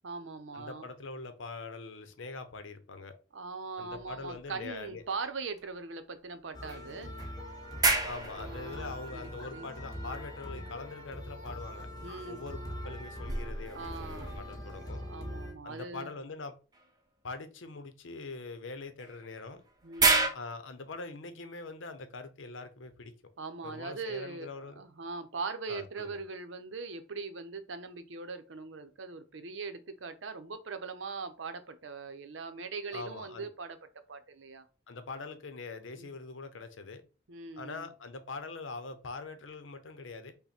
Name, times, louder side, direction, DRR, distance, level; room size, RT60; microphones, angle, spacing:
voice 1, 0.0-0.8 3.3-7.1 8.4-9.7 10.4-10.7 12.0-12.4 13.7-14.4 15.0-16.1 19.8-20.3 23.4-33.8 34.1-34.7 36.0-36.1 37.3-37.9, right 4 dB, 85° right, 0.7 m, -41 dB
voice 2, 0.5-3.1 3.8-5.0 8.0-11.9 12.2-15.0 15.6-16.5 17.2-19.6 20.3-23.1 23.6-24.8 25.7-26.2 32.9-33.5 34.9-37.0 37.5-40.3, left 3 dB, 90° left, 0.8 m, -43 dB
sound 1, 3.9-5.2 5.6-5.7 6.7-10.2 11.9-15.0 16.7-16.9 19.0-20.3, right 3 dB, 20° right, 0.7 m, -33 dB
sound 2, 6.5-15.5, left 1 dB, 20° left, 1.1 m, -43 dB
5.7 x 2.2 x 4.3 m
head